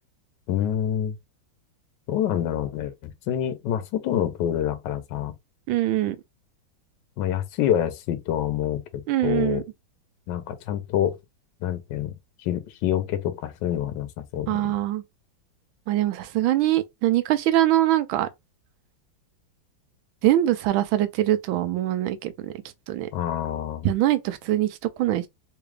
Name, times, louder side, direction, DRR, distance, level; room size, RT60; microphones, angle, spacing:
voice 1, 0.5-1.1 2.1-5.3 7.2-9.6 10.3-11.2 11.6-14.8 23.1-23.9, left 10 dB, 70° left, 1.3 m, -27 dB
voice 2, 5.7-6.2 9.1-9.6 14.5-15.0 15.9-18.3 20.2-22.5 22.9-23.1 23.8-25.3, right 13 dB, 85° right, 1.4 m, -23 dB
3.7 x 2.3 x 3.2 m
omnidirectional pair, 2.1 m